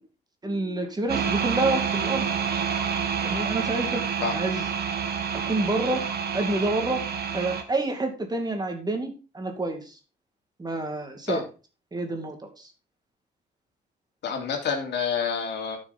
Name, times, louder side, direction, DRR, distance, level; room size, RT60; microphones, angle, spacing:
voice 1, 0.4-2.3 3.2-4.7 5.3-6.0 6.3-7.0 7.3-10.0 10.6-11.4 11.9-12.7, right 2 dB, 20° right, 5 dB, 2.3 m, -28 dB
sound 1, 1.1-7.6, right 7 dB, 60° right, 1.9 m, -28 dB
voice 2, 14.2-15.8, left 6 dB, 70° left, 3 dB, 2.9 m, -28 dB
11.5 x 6.3 x 4.2 m, 0.33 s
cardioid pair, 100°, 18 cm